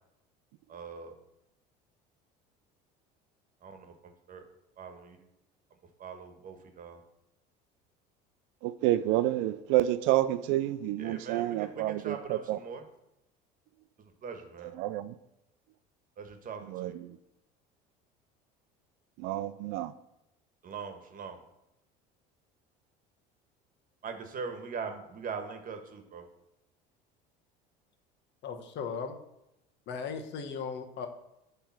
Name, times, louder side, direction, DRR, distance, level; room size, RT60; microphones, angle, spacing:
voice 1, 0.7-1.1 3.6-3.9 4.3-4.5 4.8-5.2 6.0-7.0 11.0-12.8 14.2-14.7 16.2-16.9 20.6-21.4 24.0-26.2, right 5 dB, 40° right, 1.4 m, -41 dB
voice 2, 8.6-12.6 14.6-15.1 16.6-17.2 19.2-19.9, right 14 dB, 70° right, 0.5 m, -29 dB
voice 3, 28.4-29.1 29.9-31.1, left 5 dB, 55° left, 1.2 m, -37 dB
10.0 x 3.4 x 6.0 m
supercardioid pair, 85°, 21 cm